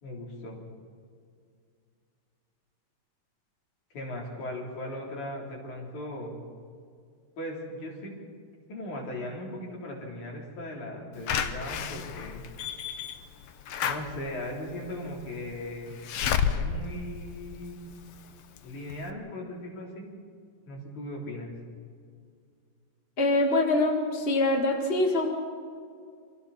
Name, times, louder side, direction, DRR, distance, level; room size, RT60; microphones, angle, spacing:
voice 1, 0.0-0.6 3.9-6.4 7.4-8.1 8.7-12.4 13.8-15.9 16.6-17.9 18.6-20.1 20.7-21.5, left 1 dB, 55° left, -2 dB, 5.2 m, -38 dB
Slam / Alarm, 11.3-18.1 18.6-18.7 18.9-19.0, left 7 dB, 85° left, 1.3 m, -32 dB
voice 2, 23.2-25.3, left 2 dB, 30° left, 2 dB, 1.0 m, -24 dB
28.5 x 25.0 x 4.3 m, 2.2 s
omnidirectional pair, 4.1 m